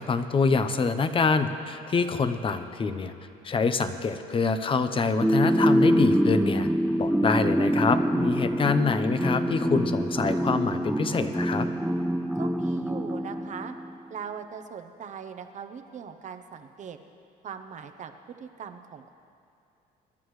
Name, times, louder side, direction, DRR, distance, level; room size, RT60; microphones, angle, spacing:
voice 1, 0.0-3.1 3.4-6.7 7.0-11.7, left 4 dB, 30° left, 10 dB, 0.8 m, -26 dB
sound 1, 5.2-14.0, equal, 5° right, 0.3 m, -25 dB
voice 2, 12.3-13.7 14.1-17.0 17.4-19.2, right 7 dB, 45° right, 8 dB, 0.9 m, -40 dB
23.5 x 11.0 x 3.2 m, 2.5 s
cardioid pair, 110°, 17 cm